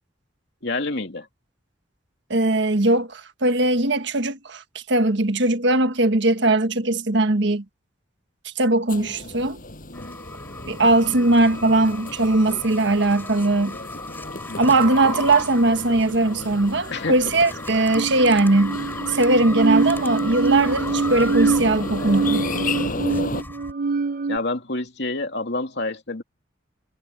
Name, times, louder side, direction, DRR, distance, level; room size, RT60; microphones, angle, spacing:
voice 1, 0.6-1.3 14.5-14.7 16.9-17.2 24.3-26.2, left 2 dB, 60° left, 2.9 m, -28 dB
voice 2, 2.3-7.6 8.4-9.6 10.7-13.8 14.6-18.8 19.1-22.5, right 2 dB, 65° right, 1.5 m, -20 dB
sound 1, 8.9-23.4, left 2 dB, 45° left, 6.3 m, -34 dB
sound 2, 9.9-23.7, left 2 dB, 10° left, 5.4 m, -36 dB
sound 3, 17.9-24.4, right 4 dB, 45° right, 0.7 m, -24 dB
head